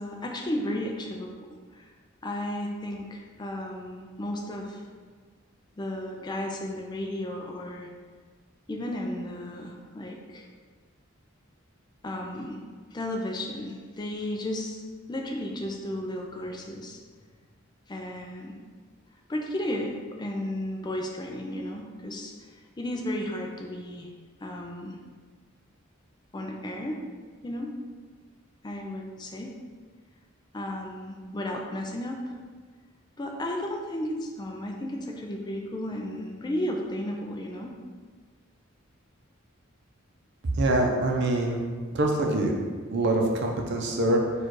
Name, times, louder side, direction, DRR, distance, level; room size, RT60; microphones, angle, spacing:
voice 1, 0.0-1.3 1.7-1.9 2.2-4.8 5.8-7.9 8.7-10.5 12.0-12.6 12.9-14.8 15.1-17.0 17.9-18.6 19.3-19.9 20.2-24.1 24.4-25.0 26.3-27.0 27.4-27.7 28.6-29.5 30.5-32.2 33.2-37.7, left 1 dB, 20° left, 1 dB, 0.4 m, -34 dB
voice 2, 40.5-41.6 41.9-42.5 42.9-44.2, right 1 dB, 55° right, 1 dB, 0.6 m, -24 dB
4.6 x 2.5 x 4.6 m, 1.5 s
head